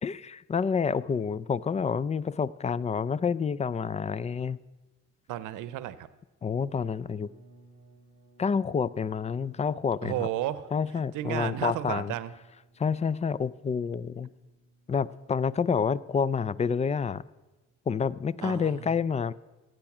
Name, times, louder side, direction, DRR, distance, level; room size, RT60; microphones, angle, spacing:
voice 1, 0.0-4.6 6.4-7.3 8.4-10.3 10.7-12.1 12.8-14.3 14.9-17.2 17.9-19.3, left 6 dB, 25° left, 20 dB, 0.4 m, -28 dB
voice 2, 5.3-6.1 10.0-10.7 11.1-12.3 18.4-18.9, right 13 dB, 90° right, 16 dB, 0.7 m, -33 dB
sound 1, 6.8-17.7, right 2 dB, 85° left, 4.8 m, -60 dB
14.5 x 9.0 x 6.0 m, 1.1 s
cardioid pair, 90°, 30 cm